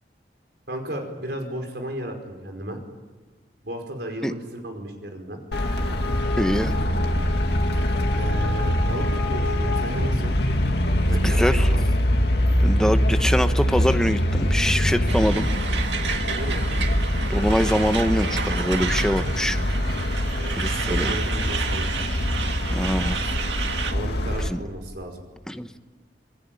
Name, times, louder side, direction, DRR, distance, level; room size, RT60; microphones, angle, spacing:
voice 1, 0.7-2.8 3.6-5.4 8.1-10.3 11.1-11.8 16.2-16.6 20.3-20.6 20.9-21.9 23.9-25.2, right 1 dB, 70° right, 4 dB, 5.2 m, -34 dB
Traffic noise roadway noise, 5.5-24.5, left 1 dB, 65° left, 2.2 m, -23 dB
voice 2, 6.4-6.7 11.2-11.7 12.6-15.5 17.3-19.6 20.5-21.1 22.7-23.2 24.5-24.6 25.5-25.7, equal, 5° left, 8 dB, 1.0 m, -24 dB
Truck, 15.1-23.9, right 6 dB, 85° right, 2.0 m, -31 dB
27.5 x 20.5 x 9.2 m, 1.3 s
head